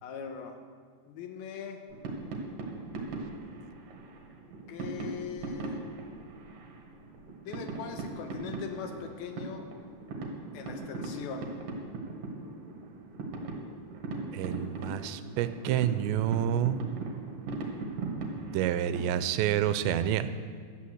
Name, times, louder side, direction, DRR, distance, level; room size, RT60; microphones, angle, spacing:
voice 1, 0.0-0.6 1.1-1.8 4.7-5.9 7.5-9.7 10.5-11.5, left 6 dB, 75° left, 5 dB, 2.5 m, -40 dB
sound 1, 1.9-19.3, right 3 dB, 60° right, 2.9 m, -39 dB
voice 2, 14.3-16.8 18.5-20.3, right 11 dB, 90° right, 11 dB, 2.9 m, -28 dB
12.0 x 8.5 x 7.8 m, 2.1 s
omnidirectional pair, 4.9 m